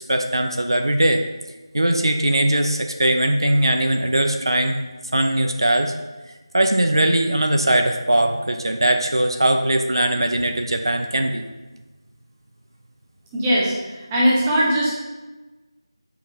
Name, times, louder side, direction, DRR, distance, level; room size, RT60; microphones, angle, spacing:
voice 1, 0.1-1.2 1.7-4.8 5.1-5.9 6.5-11.4, right 1 dB, 60° right, 5 dB, 0.5 m, -20 dB
voice 2, 13.3-15.0, equal, 10° right, -7 dB, 0.6 m, -20 dB
7.8 x 4.8 x 2.6 m, 1.2 s
figure-of-eight pair, 165°, 3 cm